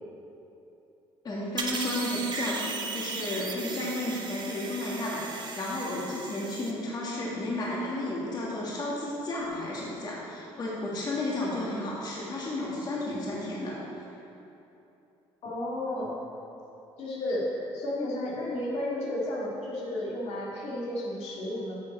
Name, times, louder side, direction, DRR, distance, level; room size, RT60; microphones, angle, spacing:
voice 1, 1.2-5.3 5.5-13.8, left 1 dB, 40° left, -5 dB, 1.6 m, -32 dB
sound 1, 1.6-6.7, right 4 dB, 40° right, 0.9 m, -36 dB
voice 2, 15.4-16.2 17.0-21.8, left 1 dB, 70° left, -5 dB, 2.1 m, -32 dB
8.7 x 6.5 x 4.3 m, 2.9 s
cardioid pair, 95°, 11 cm